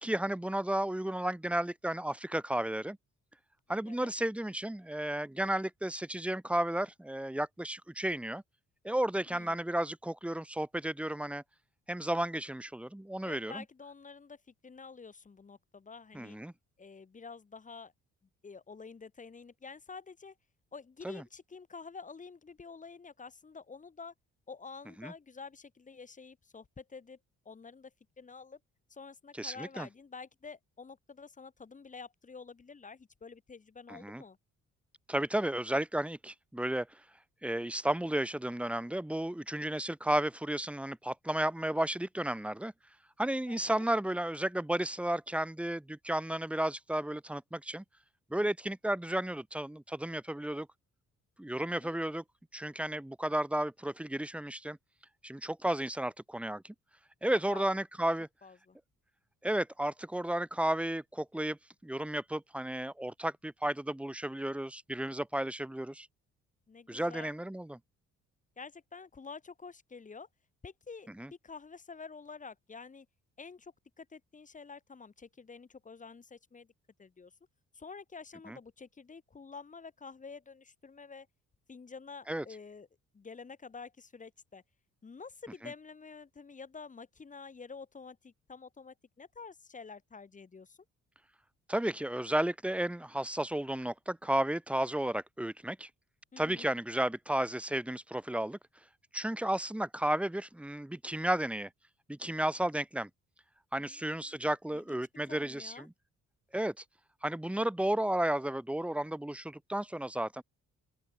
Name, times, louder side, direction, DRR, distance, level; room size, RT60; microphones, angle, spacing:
voice 1, 0.0-3.0 3.7-8.4 8.8-11.4 11.9-13.6 16.1-16.5 21.0-21.2 25.0-25.1 29.4-29.9 33.9-34.2 35.1-37.0 37.4-42.7 43.2-47.8 48.3-50.7 51.4-52.2 52.5-54.8 55.2-56.7 57.2-58.3 59.4-61.6 61.8-66.1 66.9-67.8 71.2-71.3 78.5-78.6 82.3-82.4 91.7-95.9 96.4-98.6 99.1-101.7 102.1-103.1 103.7-105.9 106.5-106.8 107.2-110.4, right 1 dB, 5° right, 0.9 m, -33 dB
voice 2, 3.7-4.1 9.3-9.6 13.2-16.4 16.8-17.9 18.4-20.3 20.7-24.1 24.5-27.2 27.4-28.6 28.9-34.4 43.5-43.9 51.7-52.0 57.2-57.6 58.4-58.8 66.7-67.3 68.6-70.3 70.6-73.1 73.4-76.7 77.0-77.3 77.7-81.3 81.7-82.9 83.1-84.6 85.0-90.8 96.3-96.7 103.8-104.4 104.7-105.0 105.3-105.9, left 5 dB, 25° left, 1.1 m, -49 dB
open air
cardioid pair, 90°, 30 cm